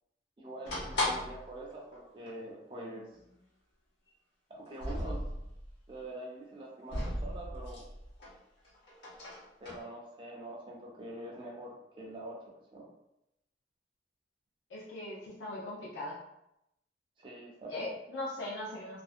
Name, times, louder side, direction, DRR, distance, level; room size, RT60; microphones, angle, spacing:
voice 1, 0.4-3.1 4.5-5.2 5.9-7.8 9.6-12.4 12.7-12.9 17.2-17.9, right 1 dB, 30° right, -3 dB, 0.4 m, -44 dB
sound 1, 0.6-1.5 1.9-2.0 2.2-2.3 3.1-3.3 4.7-5.7 6.9-8.3 8.6-9.8, left 1 dB, 70° left, 0.9 m, -36 dB
voice 2, 14.7-16.2 17.7-19.0, left 1 dB, 85° left, -5 dB, 0.5 m, -39 dB
2.5 x 2.1 x 2.4 m, 0.84 s
head